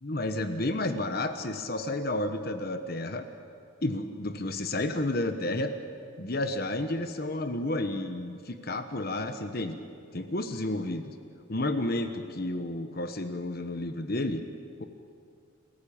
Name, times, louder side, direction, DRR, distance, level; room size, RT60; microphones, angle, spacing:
voice 1, 0.0-3.3 3.8-5.7 6.2-9.8 10.1-11.1 11.5-14.4 14.8-14.9, left 1 dB, 45° left, 8 dB, 1.2 m, -31 dB
29.5 x 15.0 x 8.7 m, 2.3 s
head